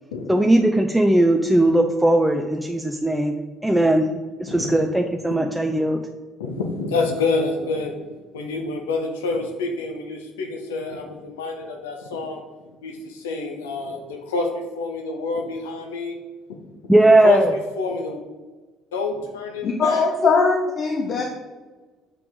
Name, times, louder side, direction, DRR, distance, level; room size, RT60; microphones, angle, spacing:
voice 1, 0.3-3.3 3.6-4.1 4.4-6.0 16.9-17.5, right 1 dB, 5° right, 3 dB, 0.5 m, -18 dB
voice 2, 6.4-7.9 8.3-12.4 12.8-16.2 17.0-18.2 18.9-20.1 21.1-21.2, left 3 dB, 80° left, 2 dB, 0.9 m, -27 dB
voice 3, 19.6-21.2, left 4 dB, 50° left, 1 dB, 0.8 m, -20 dB
6.9 x 4.5 x 3.6 m, 1.3 s
hypercardioid pair, 55°, 0 cm